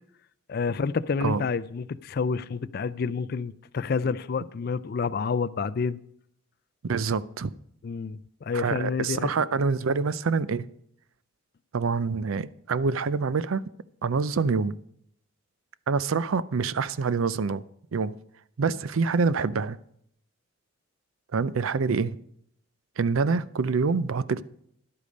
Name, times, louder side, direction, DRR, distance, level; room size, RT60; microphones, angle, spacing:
voice 1, 0.5-6.0 7.8-9.3, left 5 dB, 50° left, 0.4 m, -29 dB
voice 2, 6.8-7.5 8.5-10.7 11.7-13.6 14.0-14.8 15.9-17.6 17.9-18.1 18.6-19.8 21.3-22.2 23.0-24.4, right 4 dB, 85° right, 0.5 m, -26 dB
11.0 x 8.4 x 5.2 m
head